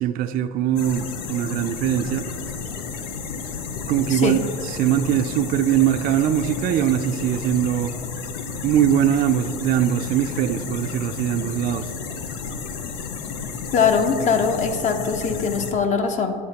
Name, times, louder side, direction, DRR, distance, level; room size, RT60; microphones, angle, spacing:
voice 1, 0.0-2.3 3.9-8.0 8.6-11.9, right 10 dB, 50° right, 7 dB, 0.4 m, -22 dB
sound 1, 0.8-15.7, left 5 dB, 85° left, 0.7 m, -32 dB
voice 2, 4.1-4.4 13.7-16.4, left 5 dB, 40° left, 6 dB, 0.8 m, -21 dB
10.5 x 7.0 x 2.9 m, 2.2 s
supercardioid pair, 115°, 19 cm